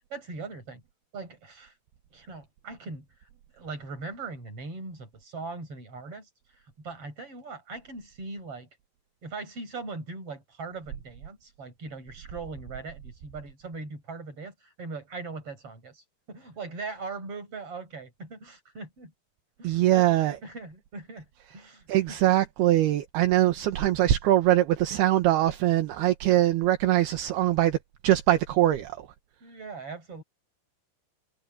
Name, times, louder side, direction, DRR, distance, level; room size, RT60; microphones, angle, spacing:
voice 1, 0.1-0.8 1.1-1.8 2.1-8.7 9.2-19.1 19.6-21.3 21.5-22.2 23.6-23.7 29.4-30.2, right 3 dB, 35° right, 7.3 m, -40 dB
voice 2, 19.6-20.4 21.9-27.8 28.0-29.1, right 14 dB, 75° right, 3.2 m, -22 dB
omnidirectional pair, 4.7 m